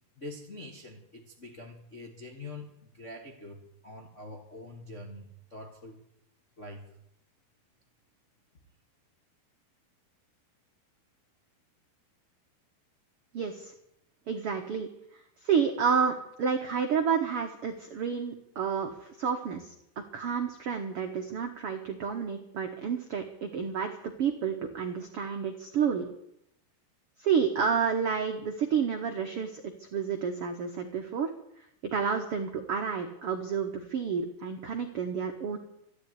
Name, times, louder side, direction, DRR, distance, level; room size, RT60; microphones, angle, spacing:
voice 1, 0.0-6.0 6.6-6.9, left 2 dB, 80° left, 0 dB, 0.6 m, -45 dB
voice 2, 13.3-13.7 14.3-14.9 15.4-26.1 27.2-31.3 31.8-35.6, right 6 dB, 90° right, 4 dB, 1.2 m, -30 dB
13.5 x 11.0 x 9.6 m, 0.78 s
omnidirectional pair, 4.6 m